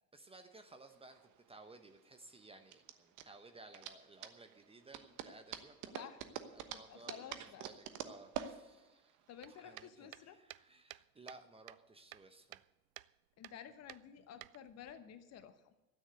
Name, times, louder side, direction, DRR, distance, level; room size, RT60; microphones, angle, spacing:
voice 1, 0.1-1.2 1.5-6.1 6.5-9.2 9.6-12.6, right 3 dB, 10° right, 7 dB, 1.0 m, -58 dB
sound 1, 0.9-9.8, right 10 dB, 35° right, 1.2 m, -47 dB
voice 2, 6.9-7.6 9.3-10.4 13.4-15.7, left 9 dB, 30° left, 11 dB, 1.0 m, -52 dB
sound 2, 9.4-11.4 11.7-12.7 13.0-13.1 13.4-13.6 13.9-14.9, right 18 dB, 55° right, 0.5 m, -53 dB
13.0 x 9.3 x 8.1 m, 1.1 s
figure-of-eight pair, 85°, 50 cm